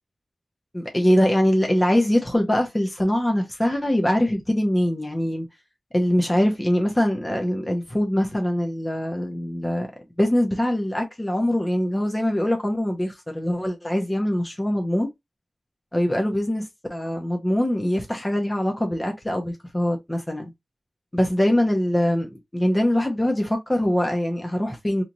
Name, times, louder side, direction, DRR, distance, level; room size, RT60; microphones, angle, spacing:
voice 1, 0.7-5.5 5.9-9.9 10.2-15.1 15.9-16.6 16.9-20.5 21.1-25.0, left 1 dB, 15° left, 0.7 m, -23 dB
3.0 x 2.4 x 3.9 m
wide cardioid pair, 110°, 0 cm